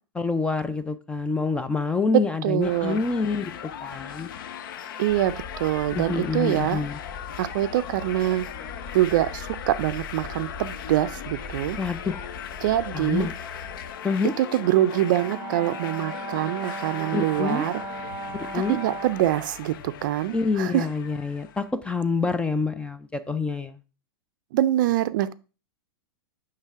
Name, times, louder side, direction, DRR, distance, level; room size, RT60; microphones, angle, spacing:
voice 1, 0.1-3.5 3.8-4.3 5.9-7.0 11.8-12.2 12.9-13.3 14.0-14.3 17.1-17.6 18.5-18.8 20.3-23.8, left 4 dB, 10° left, 12 dB, 0.4 m, -27 dB
voice 2, 2.4-3.0 5.0-6.8 7.4-8.5 8.9-11.8 12.6-13.3 14.4-17.8 18.5-20.9 24.5-25.3, right 14 dB, 60° right, 14 dB, 0.4 m, -24 dB
sound 1, 2.6-21.7, left 9 dB, 65° left, 0.5 m, -39 dB
sound 2, 5.1-13.9, left 4 dB, 35° left, 0.8 m, -41 dB
Brass instrument, 14.9-19.3, right 3 dB, 15° right, 1.2 m, -36 dB
9.0 x 3.3 x 3.5 m, 0.33 s
hypercardioid pair, 125°, 12 cm